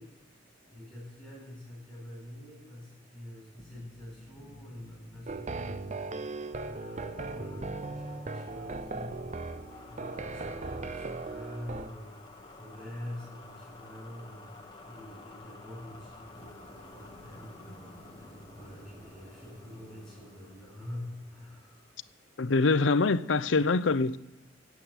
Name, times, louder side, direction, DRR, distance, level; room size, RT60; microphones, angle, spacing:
voice 1, 0.0-6.2 6.6-9.6 9.9-21.9, left 1 dB, ahead, 7.8 m, -46 dB
sound 1, 3.6-22.0, left 2 dB, 25° left, 1.4 m, -52 dB
sound 2, 5.3-11.9, right 3 dB, 40° right, 0.6 m, -38 dB
sound 3, 16.3-22.3, equal, 20° right, 2.4 m, -54 dB
voice 2, 22.4-24.2, left 3 dB, 80° left, 0.7 m, -24 dB
15.0 x 8.5 x 9.7 m
head